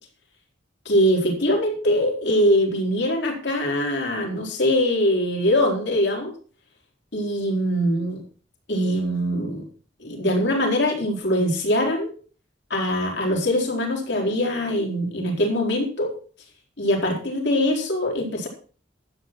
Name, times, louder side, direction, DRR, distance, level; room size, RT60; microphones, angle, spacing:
voice 1, 0.9-6.3 7.1-8.2 8.7-9.6 10.0-12.1 12.7-16.1 16.8-18.5, equal, 60° left, 1 dB, 4.1 m, -22 dB
12.5 x 8.1 x 6.0 m, 0.41 s
head